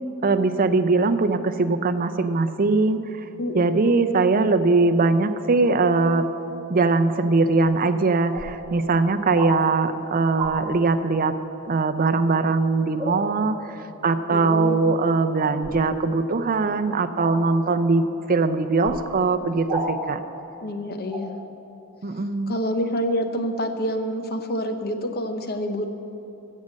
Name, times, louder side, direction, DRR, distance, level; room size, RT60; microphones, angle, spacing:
voice 1, 0.2-3.0 3.5-6.3 6.7-11.3 11.6-20.2 22.0-22.5, right 3 dB, 40° right, 10 dB, 0.5 m, -21 dB
voice 2, 3.4-3.9 14.3-14.9 20.6-21.3 22.5-25.8, equal, 45° left, 7 dB, 0.9 m, -27 dB
sound 1, 7.6-7.7 8.3-8.5 9.3-9.6 10.3-10.5 13.0-13.2 15.6-15.8 17.2-17.4 18.8-19.0 19.7-19.9 21.1-21.2, right 3 dB, 20° right, 1.8 m, -31 dB
14.5 x 6.5 x 7.6 m, 3.0 s
head